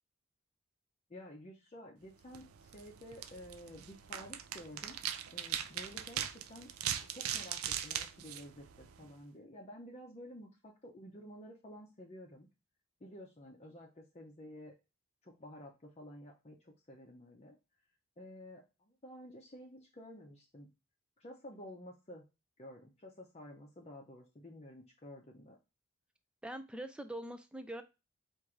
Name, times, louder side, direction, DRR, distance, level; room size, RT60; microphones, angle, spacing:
voice 1, 1.1-5.0 5.3-6.7 7.1-12.5 13.0-14.8 15.2-17.6 18.2-18.6 19.0-20.7 21.2-22.3 22.6-25.6, equal, 30° left, 0 dB, 0.7 m, -51 dB
sound 1, 2.2-9.2, right 10 dB, 80° right, 0.4 m, -41 dB
voice 2, 26.4-27.8, right 1 dB, 5° right, 9 dB, 0.3 m, -43 dB
4.5 x 2.6 x 3.6 m, 0.27 s
head